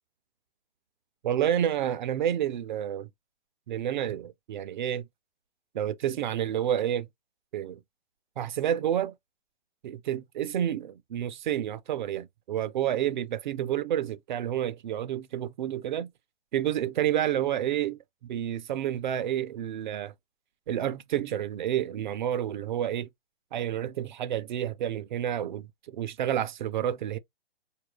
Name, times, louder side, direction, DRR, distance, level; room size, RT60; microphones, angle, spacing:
voice 1, 1.2-3.1 3.7-5.0 5.7-7.1 7.5-7.8 8.4-9.1 9.8-16.1 16.5-20.1 20.7-23.1 23.5-27.2, right 10 dB, 45° right, 0.4 m, -29 dB
4.4 x 2.4 x 3.1 m
hypercardioid pair, 135°, 32 cm